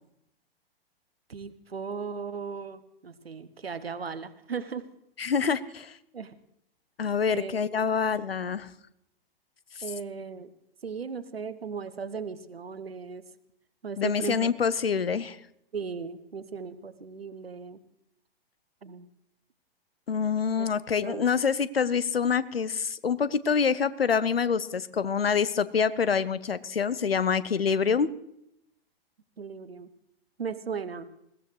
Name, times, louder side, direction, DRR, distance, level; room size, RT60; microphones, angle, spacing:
voice 1, 1.3-4.9 6.1-6.3 7.3-7.6 9.8-10.5 10.8-13.2 13.8-14.5 15.7-17.8 18.8-19.1 20.6-20.7 21.0-21.2 29.4-29.9 30.4-31.1, right 5 dB, 75° right, 13 dB, 1.0 m, -37 dB
voice 2, 5.2-5.9 7.0-8.7 14.0-15.4 20.1-28.1, left 6 dB, 75° left, 18 dB, 0.8 m, -26 dB
21.0 x 16.0 x 3.2 m, 0.79 s
figure-of-eight pair, 105°, 30 cm